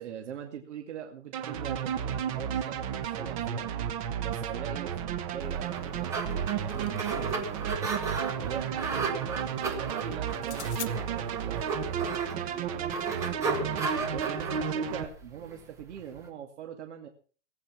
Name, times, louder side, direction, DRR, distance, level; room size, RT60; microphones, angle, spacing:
voice 1, 0.0-3.7 4.2-7.9 8.3-13.0 13.4-17.1, right 8 dB, 65° right, 3 dB, 2.1 m, -42 dB
sound 1, 1.3-15.0, right 8 dB, 25° right, 1.3 m, -33 dB
sound 2, 5.6-16.3, right 4 dB, 10° right, 0.8 m, -35 dB
sound 3, 6.3-7.6 10.4-10.9, left 11 dB, 60° left, 1.2 m, -43 dB
19.0 x 8.5 x 6.0 m, 0.42 s
supercardioid pair, 180°, 38 cm